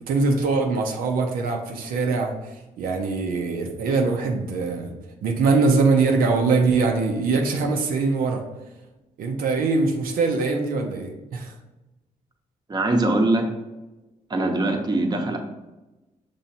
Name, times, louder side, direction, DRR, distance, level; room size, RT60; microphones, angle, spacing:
voice 1, 0.0-4.9 5.2-8.4 9.2-11.5, right 4 dB, 90° right, 2 dB, 0.6 m, -22 dB
voice 2, 12.7-13.5 14.3-15.4, right 2 dB, 30° right, 3 dB, 0.7 m, -22 dB
5.5 x 3.1 x 2.8 m, 1.0 s
cardioid pair, 75°, 14 cm